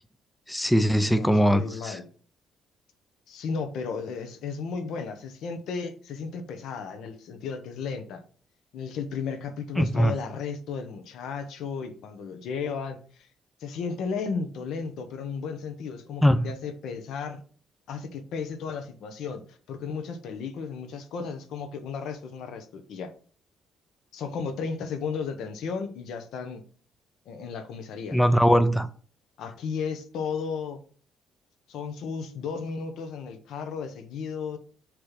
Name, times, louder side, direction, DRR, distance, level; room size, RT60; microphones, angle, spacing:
voice 1, 0.5-2.0 9.8-10.1 16.2-16.5 28.1-28.9, equal, 5° left, 10 dB, 0.5 m, -21 dB
voice 2, 1.0-2.1 3.3-8.2 8.7-13.3 13.6-17.4 17.9-23.1 24.1-26.6 27.2-28.2 29.4-30.8 31.7-34.6, left 5 dB, 75° left, 7 dB, 1.2 m, -34 dB
6.9 x 3.4 x 5.8 m, 0.42 s
cardioid pair, 105°, 0 cm